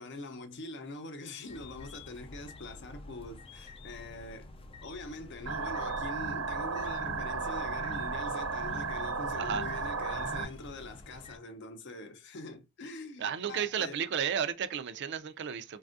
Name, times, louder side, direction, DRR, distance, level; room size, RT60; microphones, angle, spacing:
voice 1, 0.0-4.5 4.8-14.0, left 2 dB, 60° left, 0.6 m, -44 dB
sound 1, 1.5-11.4, left 2 dB, 25° left, 0.4 m, -49 dB
sound 2, 5.5-10.5, right 4 dB, 90° right, 1.0 m, -34 dB
voice 2, 13.2-15.8, right 7 dB, 55° right, 0.4 m, -33 dB
3.3 x 2.3 x 2.5 m
head